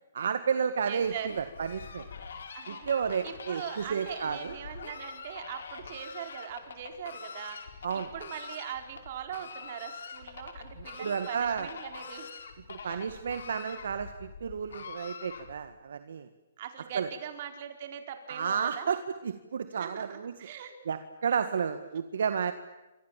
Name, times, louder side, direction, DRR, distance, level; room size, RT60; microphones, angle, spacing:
voice 1, 0.1-2.0 2.7-4.6 7.8-8.1 11.0-11.7 12.7-16.3 16.9-17.1 18.3-19.0 19.2-20.3 20.9-22.5, right 7 dB, 70° right, 9 dB, 1.8 m, -31 dB
voice 2, 0.9-1.4 2.5-2.9 3.2-7.7 8.1-12.3 12.8-13.0 16.6-18.9 19.7-20.7, right 9 dB, 50° right, 5 dB, 4.4 m, -41 dB
Fowl, 1.0-15.7, left 5 dB, 70° left, 5.0 m, -45 dB
28.5 x 25.5 x 7.5 m, 1.1 s
hypercardioid pair, 145°, 0 cm